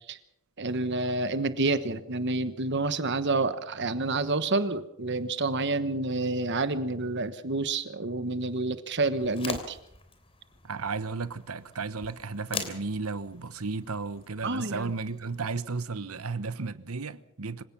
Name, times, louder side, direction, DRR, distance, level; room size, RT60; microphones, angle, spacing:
voice 1, 0.6-9.8 14.4-14.9, right 3 dB, 55° right, 1.1 m, -28 dB
sound 1, 9.2-15.6, left 4 dB, 25° left, 3.2 m, -43 dB
voice 2, 10.6-17.6, right 4 dB, 85° right, 1.1 m, -34 dB
26.0 x 17.0 x 6.1 m
head